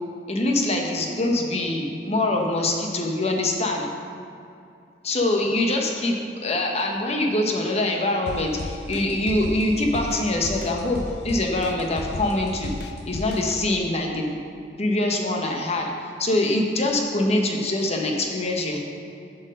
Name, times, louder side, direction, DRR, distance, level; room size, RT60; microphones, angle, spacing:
voice 1, 0.3-3.9 5.0-14.4 14.8-15.9 16.2-18.8, left 1 dB, 40° left, 1 dB, 0.9 m, -24 dB
sound 1, 8.3-13.6, left 2 dB, 65° left, 0.5 m, -34 dB
7.5 x 4.5 x 6.5 m, 2.6 s
head